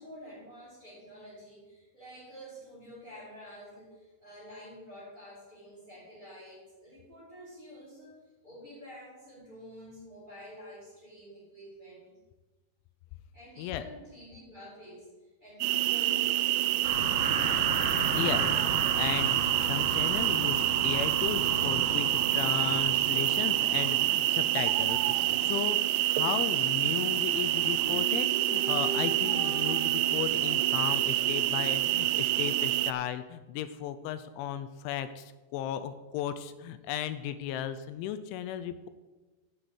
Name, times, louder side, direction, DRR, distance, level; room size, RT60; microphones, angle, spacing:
voice 1, 0.0-8.1 8.4-12.1 13.3-15.1 15.4-17.0 36.8-36.9, equal, 10° left, -7 dB, 3.9 m, -49 dB
sound 1, 15.6-32.9, right 15 dB, 85° right, 2.9 m, -27 dB
sound 2, 16.8-27.9, right 1 dB, 45° right, 2.1 m, -37 dB
voice 2, 18.2-25.8 26.0-38.9, left 10 dB, 85° left, 12 dB, 2.8 m, -35 dB
sound 3, 27.8-32.1, equal, 55° left, 5.1 m, -41 dB
9.7 x 6.9 x 7.9 m, 1.2 s
omnidirectional pair, 5.6 m